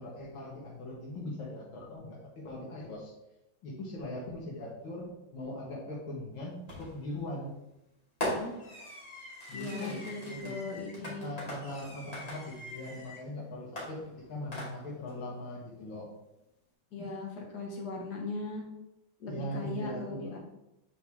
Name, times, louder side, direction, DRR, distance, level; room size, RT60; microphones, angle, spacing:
voice 1, 0.0-3.1 3.6-7.5 9.5-14.0 14.3-16.1 19.3-20.4, left 1 dB, 70° left, -5 dB, 2.1 m, -40 dB
Fireworks, 6.7-7.1 8.2-13.2 13.8-15.1, left 1 dB, 20° left, 2.3 m, -40 dB
voice 2, 9.5-11.2 16.9-18.6 19.2-20.4, left 3 dB, 55° left, 0 dB, 1.9 m, -39 dB
8.5 x 4.7 x 3.5 m, 0.89 s
omnidirectional pair, 2.3 m